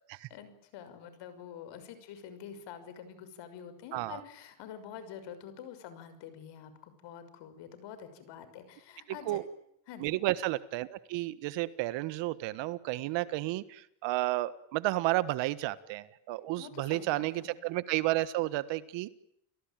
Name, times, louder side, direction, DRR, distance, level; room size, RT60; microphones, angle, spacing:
voice 1, 0.3-9.4 9.9-10.2 16.6-17.5, left 8 dB, 60° left, 11 dB, 6.2 m, -47 dB
voice 2, 10.0-19.1, right 17 dB, 60° right, 15 dB, 1.6 m, -32 dB
29.5 x 19.0 x 9.2 m, 0.74 s
supercardioid pair, 110°, 48 cm